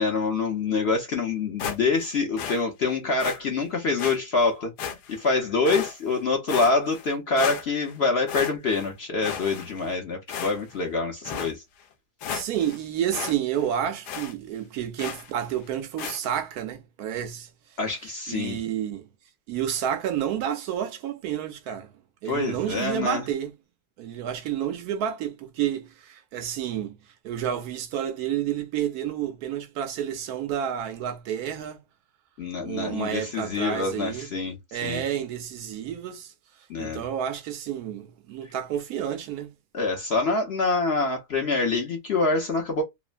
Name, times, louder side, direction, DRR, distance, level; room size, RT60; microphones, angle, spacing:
voice 1, 0.0-4.7 5.1-11.6 17.8-18.6 22.2-23.2 32.4-35.0 36.7-37.0 39.7-42.8, left 3 dB, 50° left, 0.8 m, -26 dB
sound 1, 1.6-2.1 2.4-2.6 3.2-3.4 4.0-4.2 4.8-5.3 5.7-6.2 6.5-7.1 7.4-7.9 8.3-8.9 9.2-9.9 10.3-10.8 11.3-11.5 11.9-12.0 12.2-12.8 13.1-13.4 13.6-13.7 14.1-14.3 15.0-15.3 16.0-16.2, left 7 dB, 85° left, 1.2 m, -33 dB
voice 2, 12.3-17.5 18.3-19.0 19.5-21.9 22.2-23.5 24.0-27.0 27.2-31.8 32.6-34.3 34.7-36.3 36.8-39.5, right 10 dB, 70° right, 1.0 m, -30 dB
3.1 x 2.1 x 2.4 m
omnidirectional pair, 1.7 m